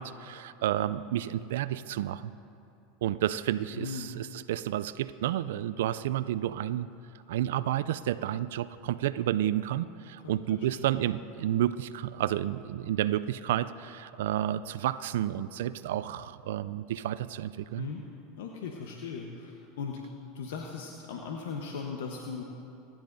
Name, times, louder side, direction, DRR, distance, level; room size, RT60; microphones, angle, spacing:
voice 1, 0.0-2.3 3.0-6.9 7.3-17.9, right 12 dB, 75° right, 13 dB, 0.3 m, -31 dB
voice 2, 3.7-4.1 10.2-10.9 17.8-18.0 18.4-22.4, left 5 dB, 75° left, 1 dB, 1.0 m, -38 dB
27.5 x 10.5 x 2.6 m, 2.7 s
hypercardioid pair, 90°, 0 cm